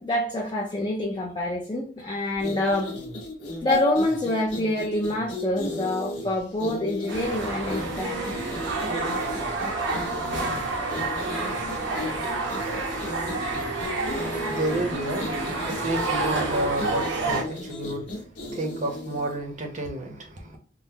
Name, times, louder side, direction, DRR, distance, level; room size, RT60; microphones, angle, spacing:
voice 1, 0.0-2.9 3.6-8.3 12.0-12.3, left 1 dB, 25° left, 0.4 m, -26 dB
sound 1, 2.3-19.4, left 1 dB, 70° left, 1.0 m, -36 dB
sound 2, 7.1-17.4, right 3 dB, 75° right, 0.8 m, -29 dB
voice 2, 14.5-18.2 18.5-20.6, right 1 dB, 40° right, 0.7 m, -30 dB
3.7 x 2.1 x 2.8 m
head